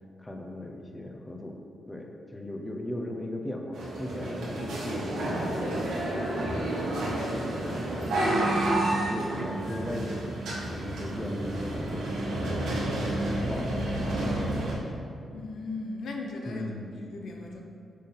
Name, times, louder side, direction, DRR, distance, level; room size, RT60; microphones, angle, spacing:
voice 1, 0.2-1.6 1.9-5.8 6.4-7.1 7.6-8.6 8.9-10.3 10.6-12.2 13.0-14.2 14.5-14.8 16.5-16.9, left 1 dB, 15° left, 2 dB, 0.9 m, -38 dB
sound 1, 3.7-14.7, right 1 dB, 90° right, 1.6 m, -30 dB
voice 2, 15.3-16.7 17.1-17.7, left 3 dB, 75° left, 1 dB, 0.8 m, -37 dB
6.5 x 3.8 x 5.5 m, 2.6 s
cardioid pair, 65°, 0 cm